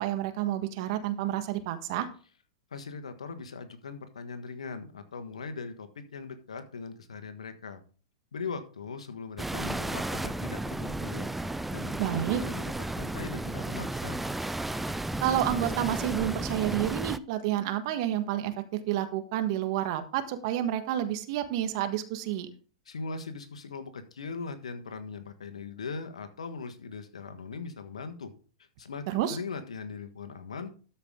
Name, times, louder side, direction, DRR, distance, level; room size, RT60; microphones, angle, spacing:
voice 1, 0.0-2.1 12.0-12.4 15.2-22.5 29.1-29.4, right 12 dB, 55° right, 9 dB, 1.5 m, -29 dB
voice 2, 2.7-7.8 8.3-11.3 11.7-14.2 22.8-28.3 28.8-30.7, left 4 dB, 90° left, 8 dB, 1.4 m, -40 dB
sound 1, 9.4-17.2, right 2 dB, 5° right, 0.4 m, -33 dB
13.0 x 5.7 x 3.7 m, 0.39 s
hypercardioid pair, 120°, 3 cm